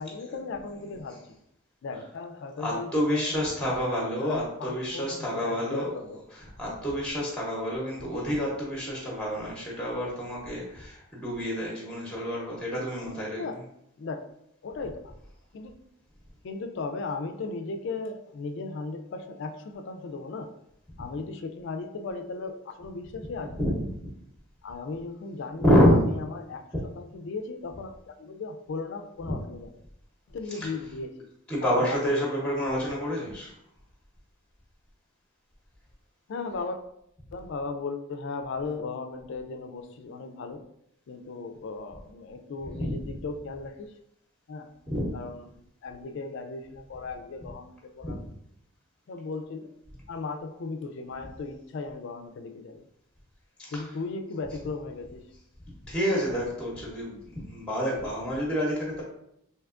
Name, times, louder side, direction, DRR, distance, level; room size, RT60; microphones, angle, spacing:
voice 1, 0.0-1.4 1.8-3.8 4.2-6.2 13.4-13.6 14.0-14.3 14.6-15.2 15.5-15.7 16.4-20.5 21.0-23.7 24.6-26.6 27.0-29.7 30.3-31.3 31.7-32.5 36.3-36.8 37.3-40.6 41.1-43.9 44.5-44.7 45.1-45.5 45.8-48.2 49.1-49.7 50.1-52.8 53.7-55.3, left 3 dB, 55° left, 7 dB, 0.3 m, -36 dB
voice 2, 2.6-13.6 23.5-23.9 25.6-26.1 30.5-30.7 31.5-33.5 42.7-43.1 44.9-45.1 48.0-48.2 53.6-53.8 55.9-59.0, equal, 5° left, -3 dB, 0.7 m, -28 dB
3.4 x 2.7 x 2.4 m, 0.78 s
head